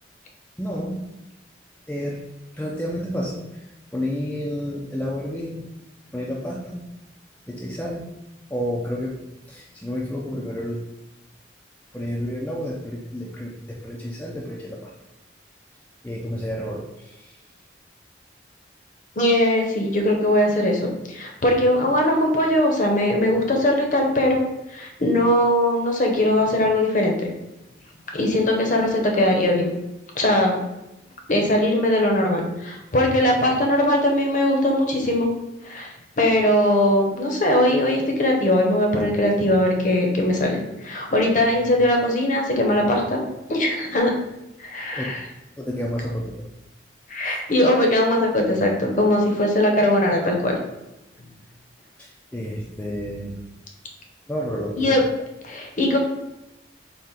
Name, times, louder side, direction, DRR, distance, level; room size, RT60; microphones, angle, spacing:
voice 1, 0.6-1.1 1.9-2.2 2.5-3.7 3.9-5.7 6.1-6.9 7.5-8.1 8.5-9.2 9.5-10.8 11.9-14.9 16.0-17.4 44.9-45.1 45.6-46.5 47.2-47.4 52.0-53.4 54.3-55.0, equal, 10° left, -3 dB, 0.3 m, -30 dB
voice 2, 19.2-24.4 24.7-27.2 28.1-29.7 30.1-30.6 31.3-35.3 35.6-35.9 36.2-43.2 43.5-44.1 44.6-45.2 47.1-50.5 54.8-55.0 55.4-56.0, left 1 dB, 40° left, 1 dB, 0.7 m, -20 dB
4.1 x 2.4 x 3.7 m, 0.95 s
head